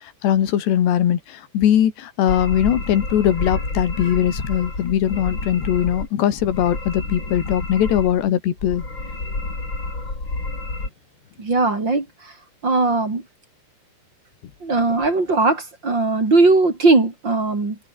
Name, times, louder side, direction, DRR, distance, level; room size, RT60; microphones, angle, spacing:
voice 1, 0.2-8.8, left 10 dB, 75° left, 4.5 m, -20 dB
sound 1, 2.3-6.1 6.4-8.3 8.6-10.9, left 2 dB, 25° left, 7.2 m, -29 dB
voice 2, 11.4-12.3 12.6-13.2 14.6-17.8, right 3 dB, 25° right, 4.2 m, -19 dB
omnidirectional pair, 5.0 m